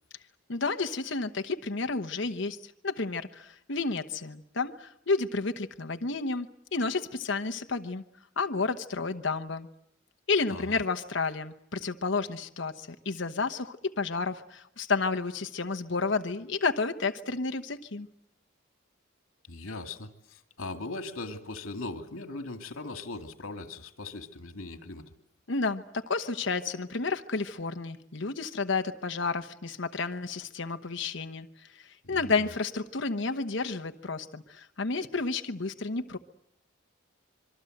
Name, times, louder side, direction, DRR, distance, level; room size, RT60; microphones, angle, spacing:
voice 1, 0.5-8.0 8.4-9.7 10.3-18.1 25.5-36.2, left 4 dB, 60° left, 7 dB, 1.1 m, -31 dB
voice 2, 19.5-25.0 32.0-32.5, left 2 dB, 80° left, 7 dB, 2.3 m, -39 dB
25.5 x 23.5 x 7.9 m, 0.76 s
head